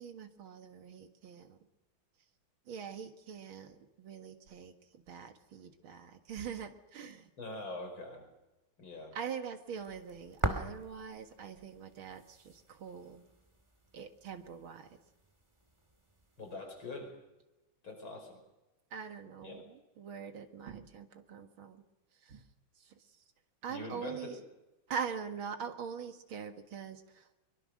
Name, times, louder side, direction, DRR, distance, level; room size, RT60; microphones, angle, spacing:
voice 1, 0.0-1.6 2.7-7.3 9.1-13.2 13.9-15.0 18.9-21.8 22.2-22.4 22.8-23.0 23.6-24.4 24.9-27.4, right 7 dB, 85° right, 7 dB, 2.5 m, -43 dB
voice 2, 7.4-8.3 8.8-9.2 16.4-17.1 17.8-18.3 19.4-19.6 23.7-24.4, left 2 dB, 80° left, 4 dB, 5.8 m, -43 dB
sound 1, 9.8-16.5, right 1 dB, 15° right, 2.1 m, -43 dB
23.5 x 23.0 x 6.4 m, 1.0 s
omnidirectional pair, 2.2 m